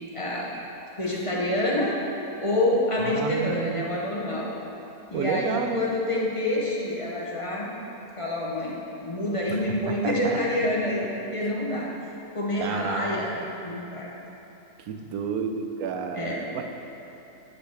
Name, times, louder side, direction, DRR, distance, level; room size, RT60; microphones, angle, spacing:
voice 1, 0.1-0.5 1.0-2.0 2.4-4.5 5.1-7.7 8.2-11.9 12.3-13.3 13.6-14.1 16.2-16.6, left 1 dB, 35° left, -4 dB, 0.5 m, -27 dB
voice 2, 3.0-3.9 5.1-5.9 9.5-10.4 12.6-13.5 14.8-16.6, right 6 dB, 75° right, 5 dB, 1.0 m, -31 dB
9.6 x 5.7 x 3.3 m, 3.0 s
omnidirectional pair, 1.6 m